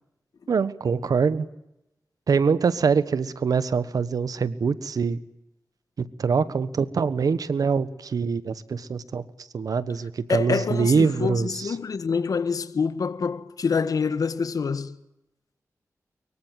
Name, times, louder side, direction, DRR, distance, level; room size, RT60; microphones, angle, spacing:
voice 1, 0.5-1.4 2.3-5.2 6.0-9.2 9.5-11.7, right 5 dB, 80° right, 1.4 m, -24 dB
voice 2, 10.3-14.9, left 5 dB, 75° left, 1.5 m, -26 dB
24.0 x 23.0 x 9.3 m
wide cardioid pair, 75°, 6 cm